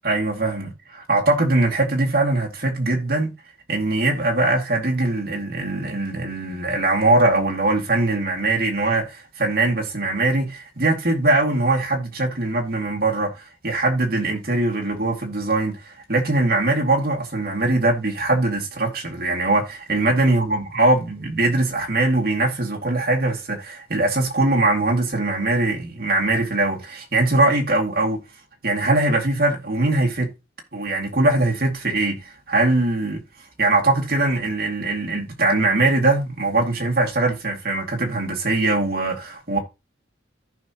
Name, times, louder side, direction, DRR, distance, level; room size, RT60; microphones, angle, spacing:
voice 1, 0.0-3.3 3.7-13.3 13.6-28.2 28.6-30.3 30.7-33.2 33.6-39.6, right 2 dB, 55° right, 2.4 m, -21 dB
14.5 x 5.5 x 3.0 m
head